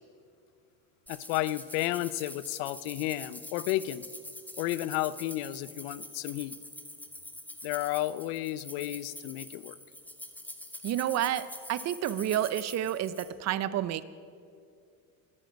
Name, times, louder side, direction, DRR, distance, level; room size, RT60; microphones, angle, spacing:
voice 1, 1.1-4.1 4.6-6.5 7.6-9.8, left 16 dB, 85° left, 17 dB, 0.6 m, -32 dB
sound 1, 1.1-13.3, left 1 dB, 5° left, 1.1 m, -45 dB
voice 2, 10.8-14.0, right 12 dB, 45° right, 16 dB, 0.6 m, -30 dB
24.0 x 9.2 x 5.2 m, 2.4 s
cardioid pair, 125°, 37 cm